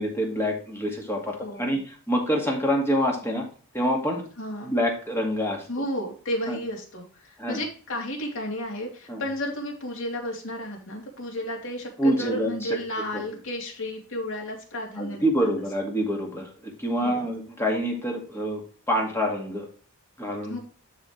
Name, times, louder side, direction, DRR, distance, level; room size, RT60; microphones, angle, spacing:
voice 1, 0.0-3.5 3.7-4.2 4.6-5.7 6.5-6.6 7.4-7.6 9.1-9.2 12.0-12.8 13.1-13.2 15.0-18.6 18.9-19.7 20.2-20.6, equal, 10° left, 0 dB, 2.1 m, -26 dB
voice 2, 1.4-1.7 4.4-4.7 5.7-15.5 17.0-17.3 20.5-20.6, left 1 dB, 60° left, -1 dB, 2.9 m, -33 dB
12.0 x 4.4 x 3.2 m, 0.40 s
head